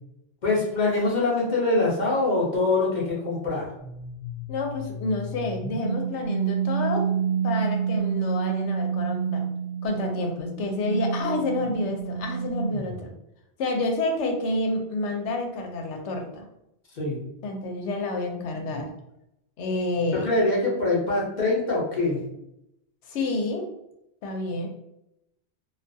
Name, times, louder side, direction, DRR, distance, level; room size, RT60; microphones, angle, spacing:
voice 1, 0.4-3.7 16.9-17.2 20.1-22.3, left 2 dB, 45° left, -4 dB, 0.8 m, -24 dB
sound 1, 3.8-13.0, right 6 dB, 10° right, 0.4 m, -29 dB
voice 2, 4.5-7.1 7.4-9.4 9.8-13.1 13.6-16.5 17.4-18.9 19.6-20.3 23.1-23.7 24.2-24.7, left 2 dB, 90° left, 3 dB, 0.9 m, -29 dB
2.3 x 2.3 x 2.6 m, 0.83 s
omnidirectional pair, 1.2 m